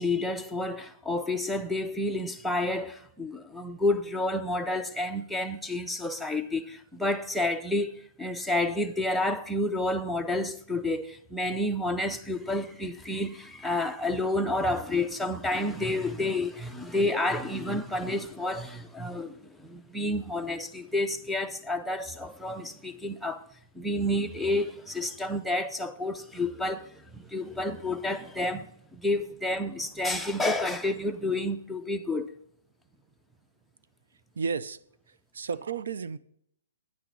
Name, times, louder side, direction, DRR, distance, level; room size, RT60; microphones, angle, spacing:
voice 1, 0.0-23.4 23.7-32.3, left 2 dB, ahead, 0.4 m, -30 dB
voice 2, 34.4-34.8 35.3-36.2, right 5 dB, 80° right, 0.6 m, -32 dB
9.6 x 9.0 x 4.0 m
hypercardioid pair, 165°, 0 cm